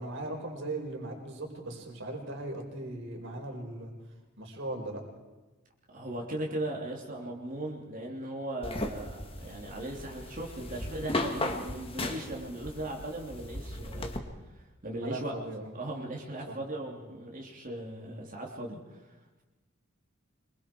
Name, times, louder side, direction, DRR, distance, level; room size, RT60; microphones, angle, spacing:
voice 1, 0.0-3.9 4.4-5.0 15.0-15.7 16.5-16.6, right 2 dB, 65° right, 2 dB, 4.8 m, -38 dB
voice 2, 5.9-14.1 14.5-15.3 15.7-19.1, right 1 dB, 40° right, -1 dB, 3.1 m, -38 dB
sound 1, 8.6-14.2, left 2 dB, 25° left, 2.0 m, -36 dB
25.5 x 23.5 x 4.6 m, 1.2 s
head